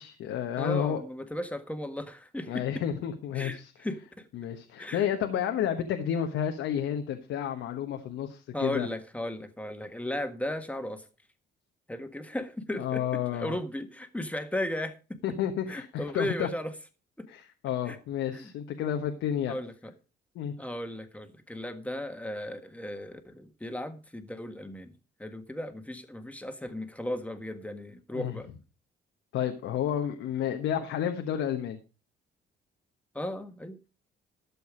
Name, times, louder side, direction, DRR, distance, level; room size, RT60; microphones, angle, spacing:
voice 1, 0.0-1.0 2.5-3.7 4.3-8.9 12.8-13.6 15.2-16.5 17.3-19.6 20.3-20.5 28.1-28.3 29.3-31.8, left 9 dB, 85° left, 1.2 m, -31 dB
voice 2, 0.6-2.8 3.3-4.3 4.8-5.0 8.5-11.0 11.9-13.0 13.3-15.2 15.7-16.7 17.2-17.3 17.9-18.0 18.3-18.5 19.5-19.9 20.6-24.9 25.2-28.5 33.1-33.8, left 1 dB, 5° left, 1.6 m, -36 dB
12.5 x 7.0 x 5.0 m
cardioid pair, 90°, 20 cm